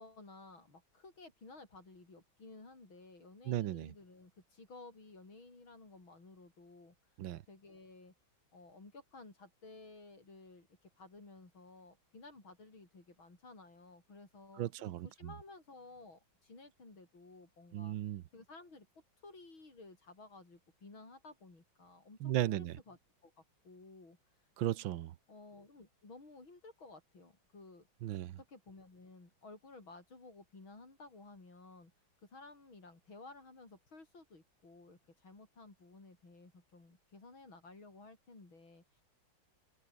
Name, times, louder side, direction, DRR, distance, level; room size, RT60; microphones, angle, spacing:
voice 1, 0.0-8.1 8.5-18.9 19.2-24.5 25.3-27.9 28.4-39.0, left 3 dB, 90° left, 6.9 m, -55 dB
voice 2, 3.5-3.9 7.2-7.4 14.6-15.1 17.7-18.2 22.2-22.8 24.6-25.1 28.0-28.4, right 13 dB, 80° right, 1.6 m, -35 dB
omnidirectional pair, 2.1 m